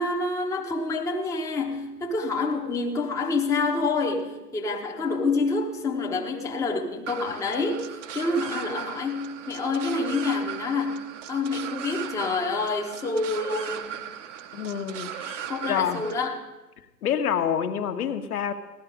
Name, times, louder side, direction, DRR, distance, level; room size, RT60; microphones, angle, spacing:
voice 1, 0.0-14.0 15.5-16.4, left 3 dB, 5° left, 0 dB, 0.9 m, -27 dB
sound 1, 7.1-16.3, right 9 dB, 50° right, 0.9 m, -38 dB
voice 2, 14.5-16.0 17.0-18.5, left 8 dB, 60° left, 7 dB, 1.3 m, -27 dB
16.0 x 12.0 x 5.0 m, 1.1 s
hypercardioid pair, 125°, 49 cm